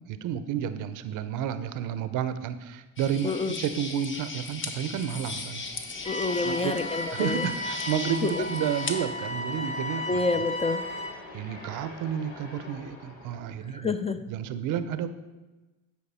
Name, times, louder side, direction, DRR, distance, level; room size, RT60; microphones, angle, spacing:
voice 1, 0.1-5.6 6.4-6.8 7.1-10.4 11.3-13.9 14.3-15.1, right 9 dB, 70° right, 12 dB, 0.6 m, -31 dB
sound 1, 3.0-9.0, left 3 dB, 35° left, 1.0 m, -38 dB
sound 2, 3.2-13.5, left 2 dB, 85° left, 1.4 m, -45 dB
voice 2, 3.2-3.5 6.0-7.5 8.2-8.5 10.1-10.8 13.7-14.2, left 3 dB, 20° left, 10 dB, 0.4 m, -28 dB
sound 3, 6.0-11.1, left 2 dB, 55° left, 2.0 m, -34 dB
9.3 x 4.7 x 4.2 m, 1.1 s
supercardioid pair, 70°, 33 cm